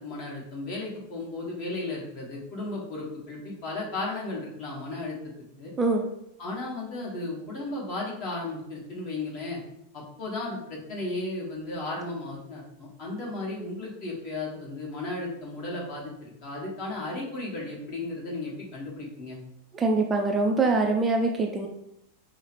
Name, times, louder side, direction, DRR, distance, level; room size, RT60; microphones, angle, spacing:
voice 1, 0.0-5.1 5.6-5.7 6.4-9.6 9.9-19.4, left 2 dB, 40° left, -3 dB, 1.4 m, -35 dB
voice 2, 19.7-21.7, right 3 dB, 15° right, 2 dB, 0.4 m, -24 dB
5.3 x 2.0 x 3.0 m, 0.80 s
figure-of-eight pair, 90°, 0 cm